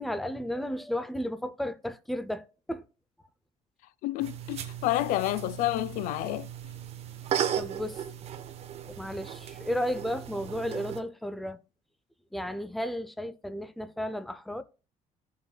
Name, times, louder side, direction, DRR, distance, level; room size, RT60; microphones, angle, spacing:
voice 1, 0.0-2.8 7.6-8.0 8.9-11.6 12.3-14.6, left 1 dB, ahead, 0.5 m, -33 dB
voice 2, 4.0-6.5, left 15 dB, 85° left, 0.4 m, -29 dB
sound 1, 4.2-11.0, right 9 dB, 50° right, 1.0 m, -36 dB
15.5 x 5.5 x 2.2 m
cardioid pair, 145°, 14 cm